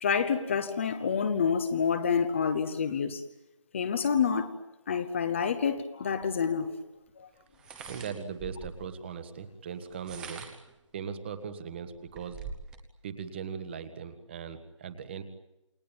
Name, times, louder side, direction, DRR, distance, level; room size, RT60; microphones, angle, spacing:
voice 1, 0.0-3.2 3.7-4.5 4.9-6.8 7.2-7.3, left 6 dB, 25° left, 9 dB, 1.0 m, -28 dB
sound 1, 6.2-6.3 7.5-8.9 9.8-10.7 11.3-11.4 11.8-12.8, right 5 dB, 5° right, 1.1 m, -44 dB
voice 2, 7.9-10.5 10.9-12.4 13.0-15.2, right 6 dB, 20° right, 10 dB, 1.5 m, -39 dB
28.5 x 20.0 x 9.1 m, 0.94 s
figure-of-eight pair, 160°, 16 cm